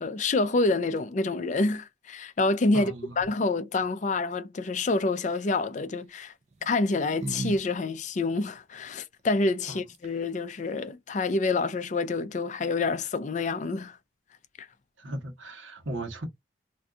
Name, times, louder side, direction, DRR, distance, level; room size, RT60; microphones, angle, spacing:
voice 1, 0.0-6.3 6.7-14.0 14.6-14.7, left 3 dB, 40° left, 0.4 m, -27 dB
voice 2, 2.7-3.2 9.7-9.8 15.0-16.2, right 1 dB, 85° right, 1.0 m, -37 dB
sound 1, 5.1-5.6 6.5-7.6 7.9-8.0 9.6-9.7 9.9-10.4, right 3 dB, 35° right, 0.4 m, -37 dB
2.6 x 2.3 x 3.6 m
head